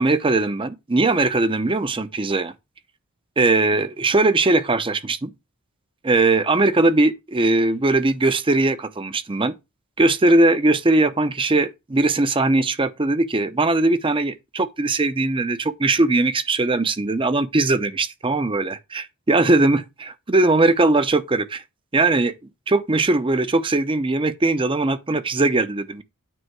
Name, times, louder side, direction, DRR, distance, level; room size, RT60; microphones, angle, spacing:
voice 1, 0.0-2.5 3.4-5.3 6.0-9.5 10.0-21.6 21.9-22.3 22.7-26.0, right 2 dB, 25° right, 0.6 m, -20 dB
9.2 x 3.3 x 4.6 m
head